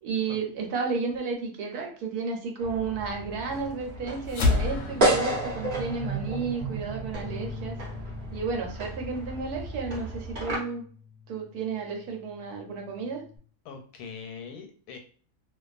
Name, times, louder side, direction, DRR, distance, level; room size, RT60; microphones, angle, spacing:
voice 1, 0.0-7.8 8.3-10.8 11.3-13.2, right 4 dB, 80° right, 2 dB, 1.2 m, -32 dB
sound 1, 2.6-10.6, right 1 dB, 45° right, 0.8 m, -32 dB
sound 2, 4.3-8.9, left 2 dB, 60° left, 0.8 m, -31 dB
Bass guitar, 7.1-13.4, left 4 dB, 5° left, 1.1 m, -45 dB
voice 2, 13.6-15.0, left 6 dB, 90° left, 4 dB, 1.1 m, -42 dB
2.4 x 2.3 x 2.4 m, 0.43 s
omnidirectional pair, 1.6 m